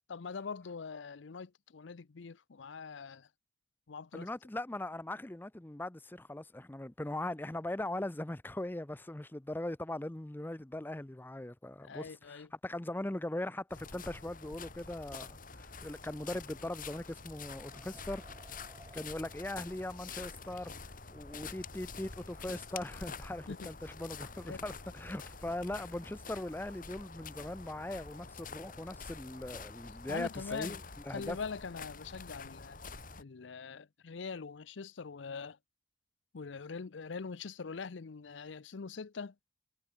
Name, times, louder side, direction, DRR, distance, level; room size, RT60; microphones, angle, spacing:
voice 1, 0.1-3.3 3.9-4.3 11.8-12.5 23.5-23.7 24.5-24.7 30.1-30.8 31.1-32.8 33.2-35.6 36.3-39.3, left 5 dB, 85° left, 0.6 m, -43 dB
voice 2, 4.1-18.6 18.9-20.7 21.1-30.8 31.1-31.4, left 1 dB, 10° left, 0.6 m, -40 dB
sound 1, 13.7-33.2, left 4 dB, 50° left, 3.2 m, -47 dB
sound 2, 15.3-23.0, right 2 dB, 20° right, 5.2 m, -65 dB
head